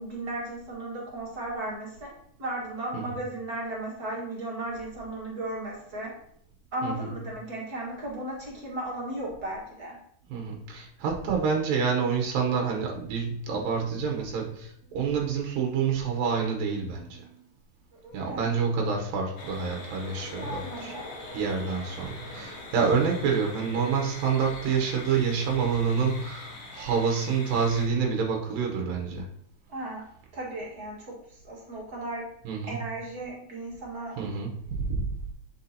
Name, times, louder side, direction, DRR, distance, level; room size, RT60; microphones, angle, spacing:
voice 1, 0.0-2.1 2.4-6.1 6.7-10.0 18.0-18.6 20.3-21.1 29.7-30.0 30.3-32.2 32.6-34.1, right 1 dB, 40° right, -3 dB, 1.6 m, -35 dB
voice 2, 10.3-17.3 18.1-20.9 21.3-29.3 32.5-32.8 34.2-35.0, right 6 dB, 90° right, 1 dB, 2.8 m, -28 dB
sound 1, 19.4-27.9, left 2 dB, 55° left, 1.6 m, -43 dB
8.2 x 6.0 x 2.8 m, 0.67 s
omnidirectional pair, 3.9 m